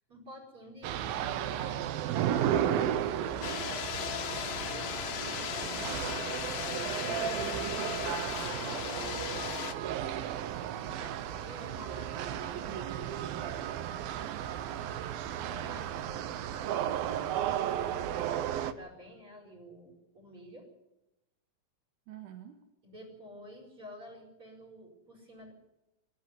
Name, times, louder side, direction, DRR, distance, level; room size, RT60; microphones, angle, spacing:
voice 1, 0.1-1.9 4.3-9.9 10.7-13.4 15.5-20.7 22.8-25.5, equal, 35° right, 1 dB, 5.7 m, -51 dB
sound 1, 0.8-18.7, right 10 dB, 85° right, 2.7 m, -34 dB
voice 2, 3.2-3.8 6.1-6.3 10.4-10.9 14.1-14.6 22.1-22.6, right 8 dB, 65° right, 4 dB, 2.9 m, -48 dB
sound 2, 3.4-9.7, left 10 dB, 85° left, 2.8 m, -37 dB
25.0 x 12.5 x 9.5 m, 0.92 s
omnidirectional pair, 4.1 m